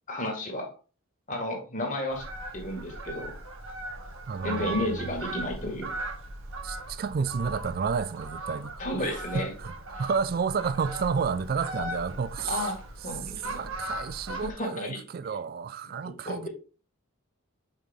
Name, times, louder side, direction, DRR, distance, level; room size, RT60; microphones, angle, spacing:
voice 1, 0.1-0.7 1.3-2.2 2.5-3.3 4.4-5.9 8.8-9.5 12.5-12.7 13.0-13.6 14.5-15.0 15.9-16.5, left 1 dB, 35° left, 1.8 m, -32 dB
Fowl, 2.1-14.5, right 2 dB, 70° right, 1.3 m, -38 dB
voice 2, 4.3-5.0 6.6-9.7 10.0-12.7 13.5-16.5, right 5 dB, 45° right, 0.3 m, -31 dB
5.8 x 4.9 x 3.5 m
head